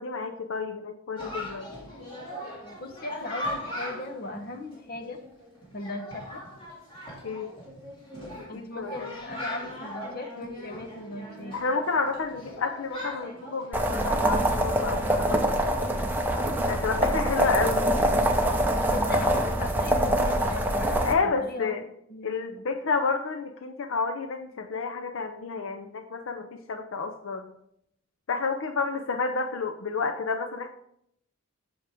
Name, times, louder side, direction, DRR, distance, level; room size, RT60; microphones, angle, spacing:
voice 1, 0.0-1.7 7.2-7.5 8.5-9.1 11.5-15.4 16.7-18.0 21.0-21.8 22.2-27.5 28.3-30.7, left 4 dB, 70° left, 6 dB, 0.5 m, -30 dB
Chatter, 1.2-20.8, left 1 dB, 25° left, 2.1 m, -41 dB
voice 2, 2.8-5.2 5.7-6.4 8.5-11.6 17.3-17.5 18.4-21.0 21.2-21.8 22.1-22.6, left 2 dB, 45° left, 5 dB, 1.0 m, -38 dB
sound 1, 13.7-21.1, right 1 dB, 10° right, 0.7 m, -24 dB
8.3 x 6.4 x 3.5 m, 0.73 s
head